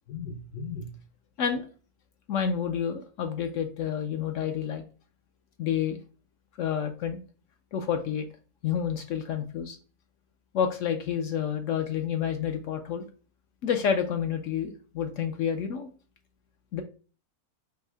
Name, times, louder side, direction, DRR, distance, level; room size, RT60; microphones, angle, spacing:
voice 1, 0.1-0.9 1.4-1.7 2.3-4.8 5.6-6.0 6.6-7.2 7.7-8.3 8.6-9.8 10.5-13.1 13.6-15.9 16.7-16.8, left 8 dB, 65° left, 6 dB, 0.8 m, -29 dB
5.4 x 2.0 x 4.5 m, 0.38 s
omnidirectional pair, 1.6 m